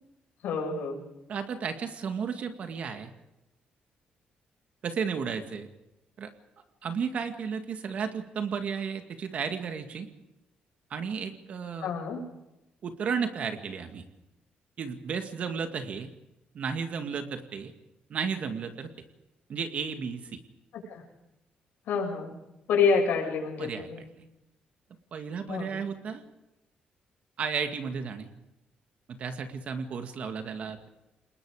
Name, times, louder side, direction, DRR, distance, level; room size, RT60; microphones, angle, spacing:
voice 1, 0.4-1.0 11.8-12.2 20.9-21.0 21.9-22.3 22.7-24.1 25.5-25.8, left 5 dB, 80° left, 1 dB, 7.0 m, -27 dB
voice 2, 1.3-3.1 4.8-5.7 6.2-6.3 6.8-10.1 10.9-11.9 12.8-14.0 14.8-16.1 16.5-17.7 18.1-18.9 19.5-20.4 23.6-23.9 25.1-26.2 27.4-28.3 29.1-30.9, right 6 dB, 45° right, 7 dB, 2.1 m, -33 dB
29.5 x 20.0 x 5.0 m, 0.93 s
cardioid pair, 170°, 3 cm